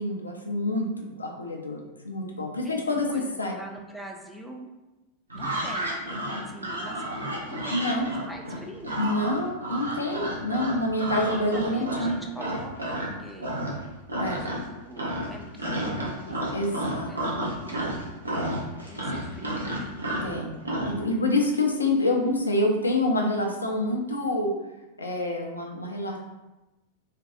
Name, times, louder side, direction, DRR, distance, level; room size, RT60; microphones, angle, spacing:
voice 1, 0.0-3.6 7.7-8.1 9.0-12.2 14.1-14.4 16.5-17.4 18.4-18.6 20.2-20.5 20.8-24.5 25.0-26.2, left 1 dB, 80° left, 1 dB, 0.3 m, -27 dB
voice 2, 2.6-3.2 3.5-4.7 5.3-9.3 11.2-13.5 14.2-16.8 17.1-17.8 18.8-20.0, right 1 dB, ahead, 0 dB, 0.3 m, -44 dB
sound 1, 5.3-13.1 13.4-13.8 14.1-14.7 15.0-20.9, right 1 dB, 80° right, 0.5 m, -31 dB
2.5 x 2.2 x 2.2 m, 1.0 s
figure-of-eight pair, 90°, 0 cm